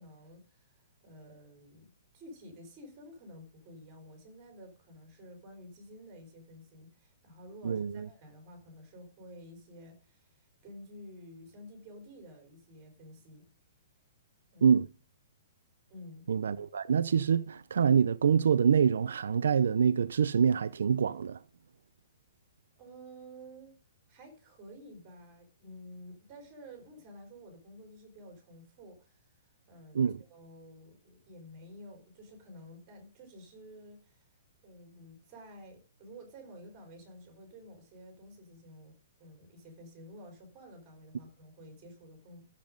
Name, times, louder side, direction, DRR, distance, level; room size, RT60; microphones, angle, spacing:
voice 1, 0.0-13.5 14.5-14.8 15.9-16.3 22.8-23.8 24.1-34.3 34.6-38.9 39.2-42.5, equal, 20° right, 4.1 m, -51 dB
voice 2, 7.6-8.1 14.6-14.9 16.3-21.4 29.9-30.2, right 7 dB, 80° right, 0.6 m, -26 dB
12.5 x 7.5 x 5.2 m
hypercardioid pair, 180°, 0 cm